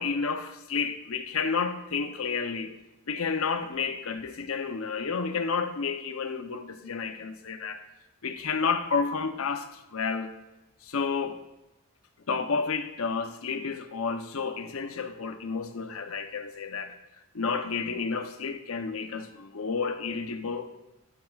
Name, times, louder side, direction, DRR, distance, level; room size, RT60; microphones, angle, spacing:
voice 1, 0.0-2.7 3.1-7.8 8.2-10.3 10.8-11.4 12.3-17.0 17.3-20.7, left 5 dB, 80° left, 0.8 m, -31 dB
11.5 x 9.7 x 2.4 m
head